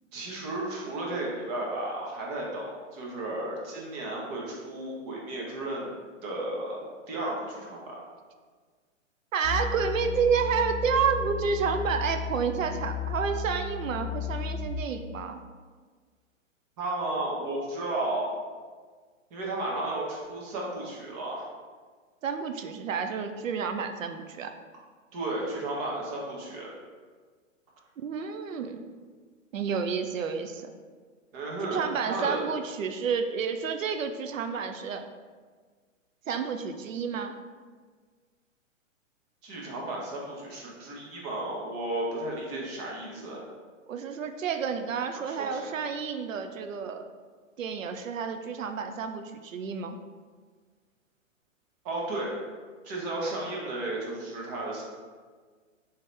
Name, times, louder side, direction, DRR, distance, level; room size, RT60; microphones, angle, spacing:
voice 1, 0.1-6.0 6.2-6.8 7.1-8.0 16.8-18.4 19.3-21.5 25.1-26.7 31.3-32.4 39.4-43.4 45.1-45.7 51.8-52.3 52.8-54.8, right 2 dB, 30° right, -3 dB, 0.8 m, -33 dB
voice 2, 9.3-15.4 22.2-24.5 28.0-28.8 29.5-30.7 31.7-35.1 36.3-37.3 43.9-47.0 47.6-50.0, right 6 dB, 80° right, 6 dB, 0.5 m, -30 dB
sound 1, 9.4-14.7, left 7 dB, 40° left, 0.5 m, -34 dB
3.7 x 2.9 x 3.2 m, 1.5 s
hypercardioid pair, 120°, 38 cm